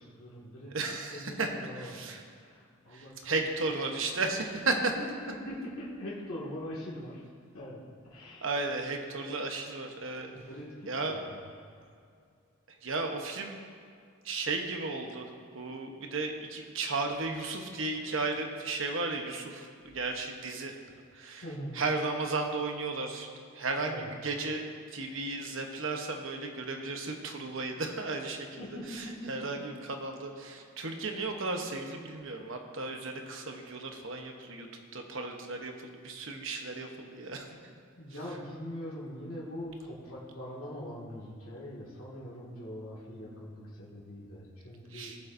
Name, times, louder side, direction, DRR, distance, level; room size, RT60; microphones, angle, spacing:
voice 1, 0.0-0.8 1.1-3.5 4.7-7.2 7.5-8.5 10.1-11.5 21.4-21.8 23.8-24.1 28.6-29.2 38.0-45.2, equal, 85° left, -6 dB, 2.2 m, -42 dB
voice 2, 0.7-1.5 1.8-2.2 2.9-4.8 8.4-10.3 10.9-11.2 12.8-13.6 14.2-20.7 21.1-21.4 21.7-23.3 23.5-28.6 28.9-34.7 34.9-37.7 44.9-45.2, right 3 dB, 65° right, 3 dB, 1.0 m, -34 dB
17.5 x 7.1 x 2.7 m, 2.3 s
head